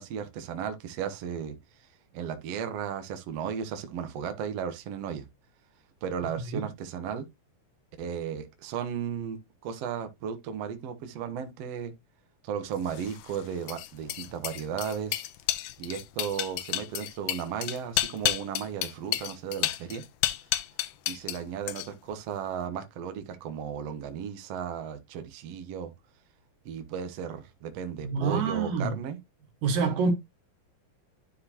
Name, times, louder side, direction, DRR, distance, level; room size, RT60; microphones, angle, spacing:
voice 1, 0.0-1.6 2.1-5.2 6.0-7.3 8.0-11.9 12.4-15.2 15.8-20.0 21.1-25.9 26.7-29.2, right 8 dB, 60° right, 1.8 m, -35 dB
sound 1, 12.9-21.4 21.7-22.1, left 14 dB, 80° left, 2.2 m, -31 dB
voice 2, 28.0-29.0 29.6-30.1, right 4 dB, 80° right, 3.5 m, -26 dB
11.5 x 4.7 x 2.8 m
omnidirectional pair, 3.9 m